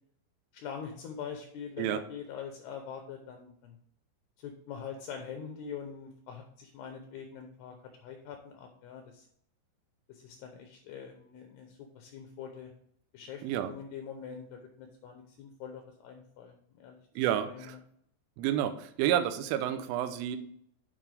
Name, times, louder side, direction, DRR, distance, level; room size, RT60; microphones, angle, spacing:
voice 1, 0.5-3.8 4.4-7.8 8.0-9.3 10.1-12.7 13.1-13.4 13.7-17.0 17.4-17.8, left 7 dB, 80° left, 4 dB, 2.4 m, -44 dB
voice 2, 17.2-17.8 18.4-20.4, right 11 dB, 80° right, 10 dB, 3.1 m, -30 dB
9.9 x 6.9 x 3.4 m, 0.70 s
omnidirectional pair, 5.8 m